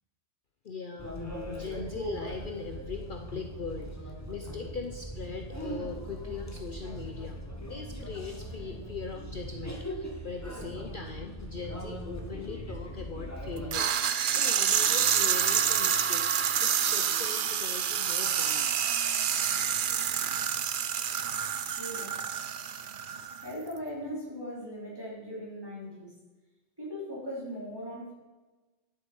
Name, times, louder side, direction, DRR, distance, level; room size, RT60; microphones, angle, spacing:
voice 1, 0.6-19.0, left 4 dB, 50° left, 4 dB, 0.9 m, -40 dB
sound 1, 1.0-13.7, right 1 dB, 15° left, 1.4 m, -40 dB
sound 2, 13.7-23.5, right 8 dB, 55° right, 0.7 m, -28 dB
voice 2, 21.7-22.1 23.4-26.1 26.8-28.1, equal, 20° right, -6 dB, 4.1 m, -39 dB
12.0 x 7.0 x 5.3 m, 1.2 s
omnidirectional pair, 1.2 m